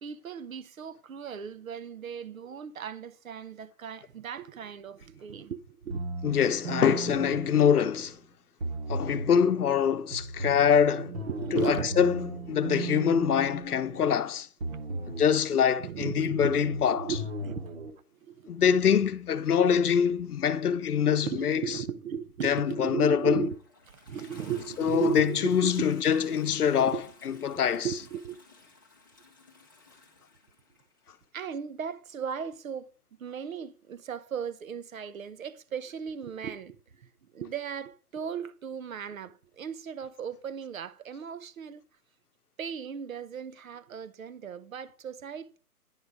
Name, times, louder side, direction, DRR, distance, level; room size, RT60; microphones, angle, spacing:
voice 1, 0.0-6.0 7.3-7.4 11.3-11.9 12.7-13.1 13.9-14.2 15.5-16.5 16.9-17.6 18.1-18.5 21.2-23.6 24.1-25.9 26.8-27.1 27.4-28.4 31.3-32.9 33.2-41.8 42.6-45.6, right 7 dB, 65° right, 0.7 m, -36 dB
sound 1, 5.9-8.1 8.6-9.4 10.1-14.2 14.6-15.4 16.1-17.9, right 3 dB, 45° right, 1.2 m, -36 dB
voice 2, 6.2-8.2 8.9-11.1 11.5-14.5 15.1-17.1 18.5-21.8 22.4-23.5 24.8-27.0 27.3-27.9, left 8 dB, 75° left, 0.7 m, -24 dB
Toilet flush, 22.8-31.2 32.3-32.4, left 3 dB, 15° left, 0.5 m, -55 dB
9.8 x 3.8 x 4.7 m
hypercardioid pair, 160°, 45 cm